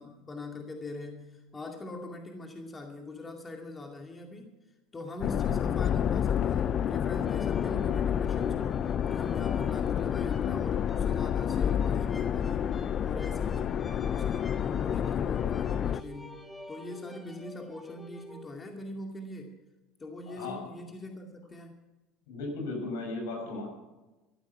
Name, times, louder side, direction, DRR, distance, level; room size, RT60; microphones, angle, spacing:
voice 1, 0.0-4.5 4.9-8.8 9.1-12.7 13.0-19.6 20.0-21.8, left 2 dB, 20° left, 2 dB, 2.3 m, -42 dB
sound 1, 5.2-16.0, left 9 dB, 45° left, 0.5 m, -29 dB
sound 2, 7.2-18.5, left 1 dB, 5° left, 2.5 m, -49 dB
voice 2, 20.3-20.7 22.3-23.7, left 2 dB, 80° left, 1 dB, 6.6 m, -36 dB
14.5 x 12.0 x 5.8 m, 1.1 s
hypercardioid pair, 90°, 0 cm